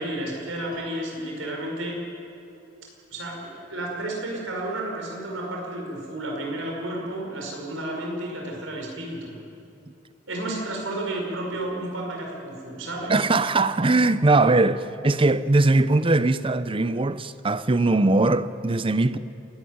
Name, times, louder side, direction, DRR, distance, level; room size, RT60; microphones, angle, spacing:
voice 1, 0.0-2.0 3.1-9.4 10.3-13.1, right 1 dB, 85° right, 5.3 m, -32 dB
Piano, 0.7-2.3, left 3 dB, 85° left, 4.2 m, -52 dB
voice 2, 13.1-19.2, right 2 dB, 25° right, 0.6 m, -20 dB
28.0 x 12.5 x 9.4 m
head